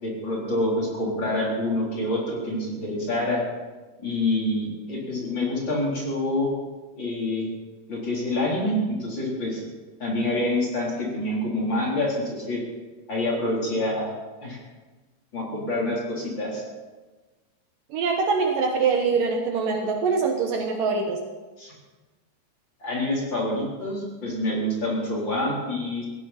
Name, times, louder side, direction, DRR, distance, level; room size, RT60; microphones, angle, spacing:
voice 1, 0.0-3.4 4.0-6.5 7.0-7.5 7.9-9.6 10.0-12.6 13.1-14.1 14.4-14.6 15.3-16.6 21.6-21.7 22.8-26.0, left 1 dB, 30° left, -4 dB, 4.2 m, -27 dB
voice 2, 17.9-21.2, right 5 dB, 65° right, 2 dB, 2.7 m, -24 dB
18.5 x 16.0 x 4.4 m, 1.2 s
omnidirectional pair, 4.5 m